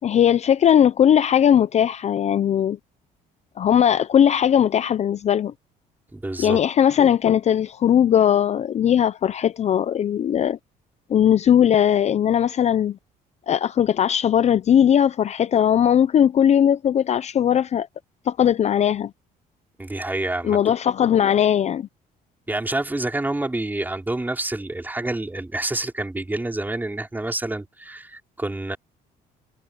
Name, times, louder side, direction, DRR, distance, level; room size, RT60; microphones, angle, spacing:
voice 1, 0.0-2.8 3.6-5.5 6.4-10.6 11.1-13.0 13.5-17.9 18.3-19.1 20.4-21.9, left 9 dB, 40° left, 0.6 m, -19 dB
voice 2, 6.1-6.6 19.8-20.6 22.5-28.8, right 2 dB, 10° right, 4.9 m, -28 dB
cardioid pair, 110°, 17 cm